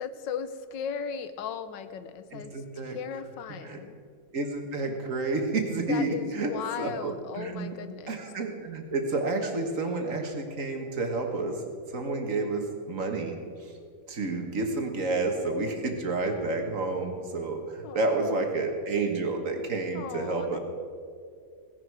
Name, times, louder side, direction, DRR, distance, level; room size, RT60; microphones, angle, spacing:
voice 1, 0.0-3.9 5.9-8.2 17.8-18.5 19.9-20.6, left 7 dB, 90° left, 12 dB, 1.4 m, -37 dB
voice 2, 2.3-3.0 3.6-3.8 4.3-7.8 8.1-11.5 11.9-13.4 14.1-20.6, right 3 dB, 50° right, 4 dB, 1.6 m, -30 dB
16.5 x 11.0 x 4.7 m, 2.2 s
omnidirectional pair, 1.9 m